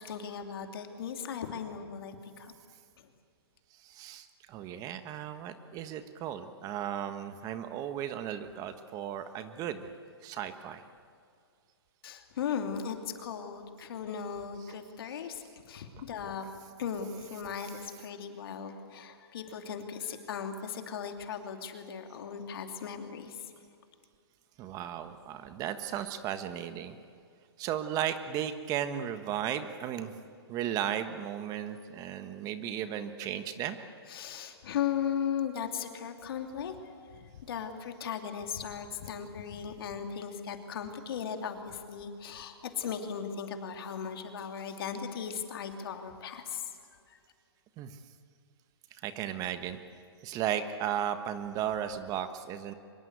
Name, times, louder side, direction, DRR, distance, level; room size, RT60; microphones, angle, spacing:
voice 1, 0.0-2.5 3.0-3.1 12.0-15.4 15.7-16.4 16.8-23.4 34.1-36.8 37.1-46.6 47.1-47.2, left 7 dB, 60° left, 5 dB, 2.8 m, -37 dB
voice 2, 3.8-9.9 10.2-10.8 17.3-17.9 24.6-26.9 27.6-30.1 30.5-33.8 47.8-47.9 49.0-49.8 50.2-52.7, right 10 dB, 25° right, 10 dB, 1.4 m, -35 dB
24.5 x 22.0 x 8.1 m, 2.3 s
hypercardioid pair, 140°, 14 cm